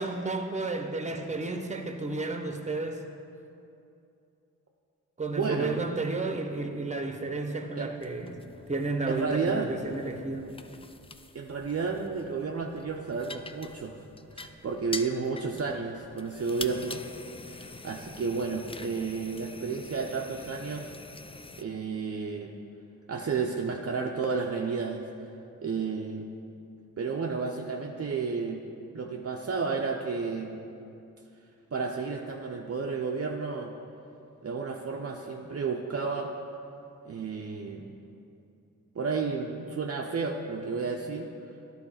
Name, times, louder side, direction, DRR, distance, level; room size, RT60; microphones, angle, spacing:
voice 1, 0.0-3.0 5.2-8.4 8.7-10.5, right 3 dB, 20° right, 5 dB, 0.9 m, -32 dB
voice 2, 5.3-5.7 7.8-7.9 9.1-9.7 11.3-14.0 14.3-17.0 17.5-20.9 21.6-22.5 23.1-25.1 25.6-26.3 27.0-28.6 28.9-30.6 31.7-33.7 34.4-36.3 37.0-37.9 38.9-41.3, right 5 dB, 40° right, 1 dB, 0.7 m, -32 dB
sound 1, 8.0-21.6, left 3 dB, 15° left, 0.4 m, -45 dB
11.0 x 3.9 x 5.7 m, 2.6 s
supercardioid pair, 40°, 36 cm